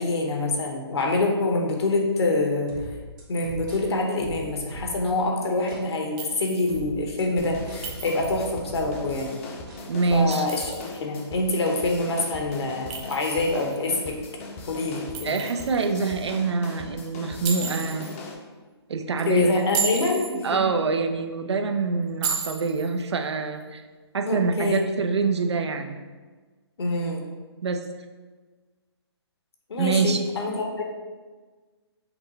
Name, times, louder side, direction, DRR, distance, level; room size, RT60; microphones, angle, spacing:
voice 1, 0.0-2.7 3.3-9.3 10.1-14.2 14.7-15.4 19.1-20.6 24.3-24.9 26.8-27.3 29.7-30.8, left 2 dB, 70° left, 1 dB, 1.0 m, -26 dB
sound 1, 2.7-5.2 5.7-5.9 6.7-9.2 9.7-9.9, right 1 dB, 50° right, 1.3 m, -40 dB
Chink clink, 6.2-6.8 7.8-8.5 10.1-11.0 12.9-13.8 15.1-15.9 17.4-18.1 19.6-20.4 22.2-22.9, right 6 dB, 20° right, 0.4 m, -33 dB
sound 2, 7.4-18.3, left 3 dB, 30° left, 0.6 m, -40 dB
voice 2, 9.9-10.5 15.2-18.1 18.9-19.5 20.4-23.8 24.1-26.0 27.6-27.8 29.8-30.2, right 4 dB, 80° right, 6 dB, 0.5 m, -25 dB
5.9 x 2.2 x 4.0 m, 1.4 s
hypercardioid pair, 150°, 14 cm